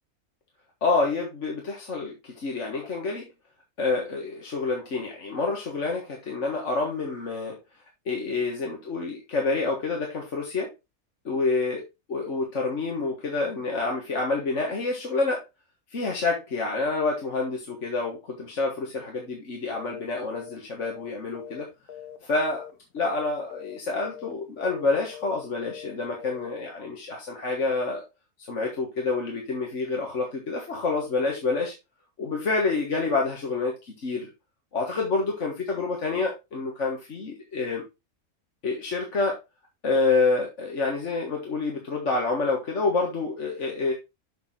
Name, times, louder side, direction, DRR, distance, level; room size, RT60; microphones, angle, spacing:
voice 1, 0.8-3.3 3.8-7.6 8.1-10.7 11.3-11.8 12.1-15.4 15.9-21.7 22.2-22.6 22.9-28.0 28.4-31.7 32.2-34.3 34.7-37.8 38.6-39.4 39.8-43.9, left 3 dB, 55° left, 0 dB, 1.9 m, -28 dB
sound 1, 19.7-20.0 20.3-20.5 20.8-22.2 22.4-22.7 23.0-23.2 23.5-23.8 24.0-24.3 24.6-24.9 25.1-25.4 25.6-25.9 26.2-26.5, left 9 dB, 90° left, 1.7 m, -42 dB
6.9 x 6.3 x 3.7 m, 0.24 s
omnidirectional pair, 1.5 m